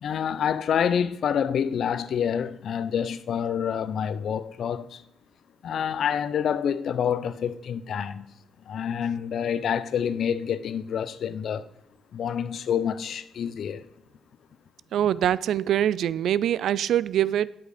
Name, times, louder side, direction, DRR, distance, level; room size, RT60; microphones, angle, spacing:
voice 1, 0.0-5.0 5.6-8.3 8.7-11.7 12.1-13.8, left 8 dB, 70° left, 0.6 m, -27 dB
voice 2, 14.9-17.5, right 11 dB, 75° right, 0.3 m, -24 dB
9.0 x 8.1 x 5.0 m
supercardioid pair, 65°, 0 cm